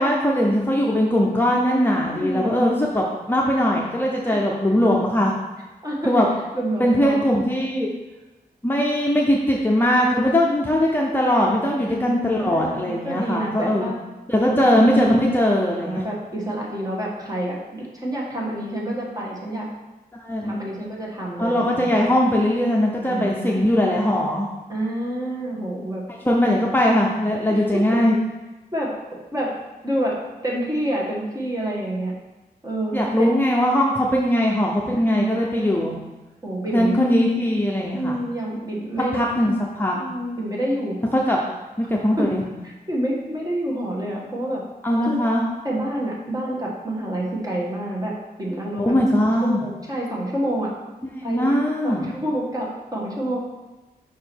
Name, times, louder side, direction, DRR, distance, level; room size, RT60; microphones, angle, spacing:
voice 1, 0.0-5.3 6.0-6.3 6.8-7.9 8.6-13.9 14.3-16.0 20.1-20.6 21.4-24.5 26.2-28.1 32.9-36.0 36.7-38.2 39.1-39.9 41.1-41.4 41.8-42.4 44.8-45.4 48.8-49.6 51.2-52.1, left 1 dB, 10° left, -3 dB, 0.7 m, -20 dB
voice 2, 2.1-2.7 4.3-4.4 4.8-4.9 5.8-6.2 6.5-7.3 11.8-14.0 14.4-14.8 15.8-19.7 20.4-22.0 23.1-23.9 24.7-26.0 27.5-27.8 28.1-28.2 28.7-28.9 29.3-29.5 29.8-30.2 30.4-32.1 32.6-33.3 35.0-35.9 36.4-37.1 37.9-39.2 39.9-40.9 42.2-42.3 42.9-44.6 45.0-45.2 45.6-48.9 49.4-50.7 51.2-51.6 51.8-53.4, right 1 dB, 20° right, -4 dB, 1.5 m, -28 dB
5.6 x 4.8 x 4.5 m, 1.1 s
wide cardioid pair, 110°, 16 cm